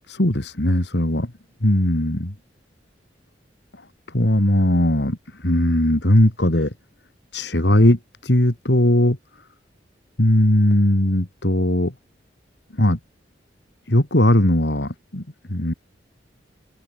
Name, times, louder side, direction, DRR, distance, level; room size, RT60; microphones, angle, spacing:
voice 1, 0.1-1.3 1.6-2.3 4.1-6.7 7.3-9.2 10.2-11.9 12.7-13.0 13.9-15.2 15.5-15.7, left 1 dB, 70° left, 2.8 m, -19 dB
open air
head